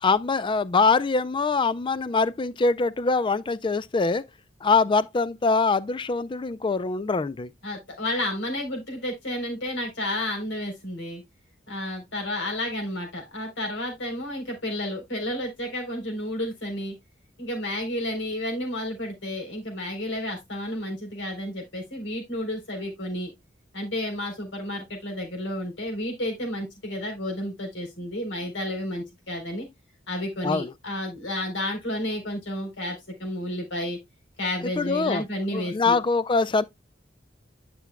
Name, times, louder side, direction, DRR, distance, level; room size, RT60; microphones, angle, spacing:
voice 1, 0.0-4.2 4.6-7.5 30.4-30.7 34.8-35.2 35.5-36.6, left 4 dB, 25° left, 0.4 m, -23 dB
voice 2, 7.6-11.2 11.7-16.9 17.4-23.3 23.7-29.7 30.1-34.0 34.4-36.0, left 1 dB, 80° left, 3.6 m, -31 dB
10.5 x 6.0 x 2.2 m
head